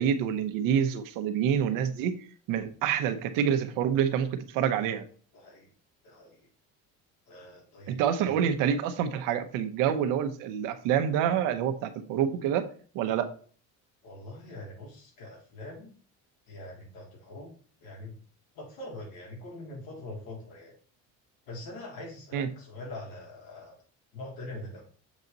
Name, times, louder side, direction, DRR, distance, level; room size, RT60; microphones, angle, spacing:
voice 1, 0.0-2.1 2.5-5.0 7.9-12.6 12.9-13.3 22.3-22.5, right 8 dB, 80° right, 9 dB, 0.9 m, -27 dB
voice 2, 5.3-5.7 6.0-6.4 7.3-8.3 14.0-15.9 16.5-17.5 17.8-18.2 18.6-20.8 21.5-23.8 24.1-24.8, left 1 dB, 85° left, -2 dB, 3.5 m, -43 dB
7.3 x 4.1 x 4.0 m, 0.41 s
cardioid pair, 165°, 32 cm